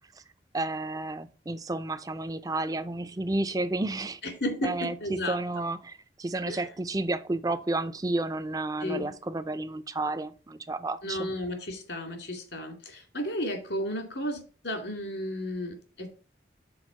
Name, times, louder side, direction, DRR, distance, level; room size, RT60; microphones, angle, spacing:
voice 1, 0.5-4.2 4.6-11.3, right 2 dB, 20° right, 0.4 m, -31 dB
voice 2, 4.2-5.4 6.5-6.7 8.8-9.1 11.0-16.1, left 1 dB, 75° left, 2.3 m, -33 dB
6.3 x 4.4 x 6.0 m
head